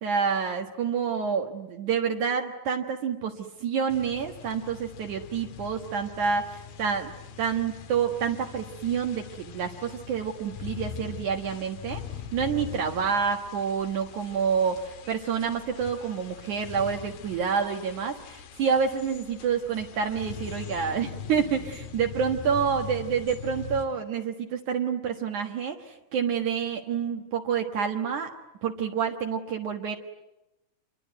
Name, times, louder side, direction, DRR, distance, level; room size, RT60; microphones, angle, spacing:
voice 1, 0.0-12.0 12.3-28.3 28.6-30.0, right 6 dB, 65° right, 3 dB, 2.8 m, -28 dB
sound 1, 3.9-23.9, left 8 dB, 90° left, 3.2 m, -42 dB
27.5 x 23.0 x 9.4 m, 0.94 s
omnidirectional pair, 4.0 m